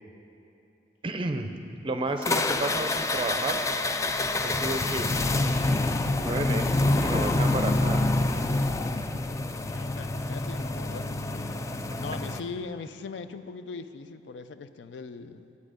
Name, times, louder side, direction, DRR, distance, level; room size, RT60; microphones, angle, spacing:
voice 1, 1.0-1.5 1.8-3.7 4.4-5.1 6.2-8.0, right 2 dB, 30° right, 6 dB, 0.6 m, -31 dB
sound 1, 2.2-12.4, left 2 dB, 15° left, 0.3 m, -27 dB
voice 2, 4.7-5.0 9.7-15.6, left 4 dB, 85° left, 11 dB, 0.4 m, -41 dB
11.0 x 8.3 x 5.0 m, 2.9 s
head